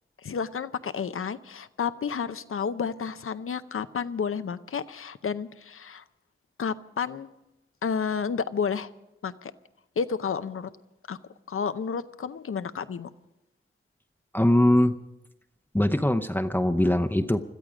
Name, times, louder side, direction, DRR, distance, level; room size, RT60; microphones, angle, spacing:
voice 1, 0.2-6.0 6.6-7.3 7.8-8.9 9.2-9.5 10.0-10.7 11.1-11.2 11.5-13.1, left 6 dB, 80° left, 13 dB, 0.7 m, -31 dB
voice 2, 14.3-15.0 15.7-17.4, left 1 dB, 10° left, 7 dB, 0.7 m, -22 dB
21.5 x 13.5 x 5.0 m, 0.93 s
wide cardioid pair, 65°, 21 cm